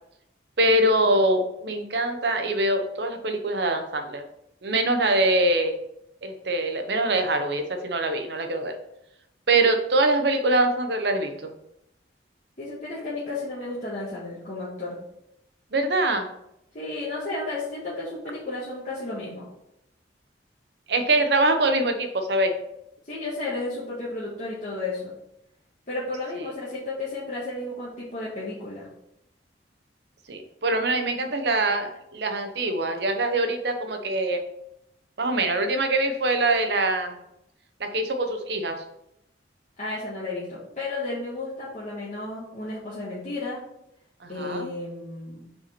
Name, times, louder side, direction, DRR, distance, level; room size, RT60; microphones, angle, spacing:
voice 1, 0.6-4.2 4.6-5.8 6.2-8.8 9.5-11.5 15.7-16.3 20.9-22.6 30.3-34.4 35.2-37.2 37.8-38.8 44.2-44.7, right 2 dB, 65° right, 6 dB, 0.8 m, -24 dB
voice 2, 12.6-15.0 16.7-19.5 23.0-25.1 25.9-28.9 39.8-43.6 44.3-45.5, left 2 dB, 45° left, -9 dB, 1.5 m, -33 dB
5.4 x 4.4 x 4.3 m, 0.81 s
head